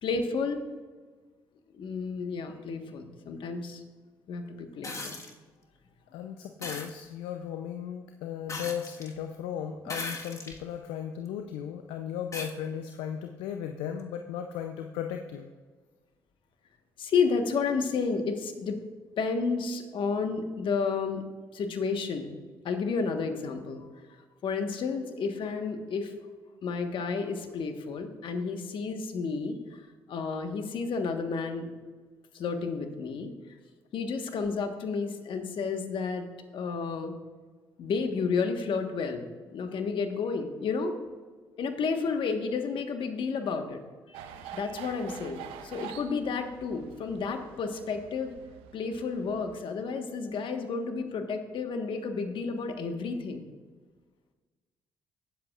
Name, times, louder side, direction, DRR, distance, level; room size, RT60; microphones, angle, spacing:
voice 1, 0.0-0.6 1.7-3.8 4.3-5.2 17.0-18.8 19.1-21.2 21.5-22.4 22.6-23.8 24.4-26.1 26.6-29.8 30.1-31.7 32.3-33.3 33.9-36.3 36.5-37.1 37.8-40.9 41.6-43.8 44.1-44.2 44.5-48.3 48.7-53.5, left 5 dB, 60° left, 6 dB, 1.4 m, -31 dB
sound 1, 4.8-5.3 6.6-6.9 8.5-9.1 9.9-10.6 11.3-11.4 12.3-12.5 14.0-14.1, left 3 dB, 35° left, 1.5 m, -37 dB
voice 2, 6.1-15.5, left 9 dB, 80° left, 5 dB, 0.5 m, -36 dB
sound 2, 44.1-49.6, right 9 dB, 80° right, 0.6 m, -46 dB
17.5 x 7.9 x 2.5 m, 1.4 s
hypercardioid pair, 50°, 10 cm